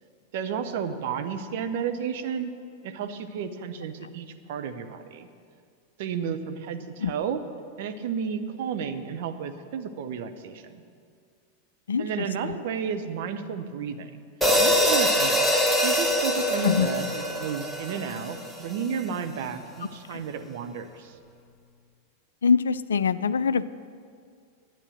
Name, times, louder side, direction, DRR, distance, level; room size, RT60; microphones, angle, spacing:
voice 1, 0.3-2.5 2.8-5.3 6.0-7.4 7.8-10.8 12.0-14.1 14.6-15.4 15.8-21.1, right 7 dB, 50° right, 7 dB, 0.9 m, -32 dB
voice 2, 11.9-12.6 16.6-16.9 20.1-20.2 22.4-23.7, left 6 dB, 70° left, 16 dB, 0.4 m, -24 dB
sound 1, 14.4-18.8, equal, 5° right, 1.5 m, -24 dB
11.5 x 9.0 x 6.5 m, 2.2 s
figure-of-eight pair, 90°, 0 cm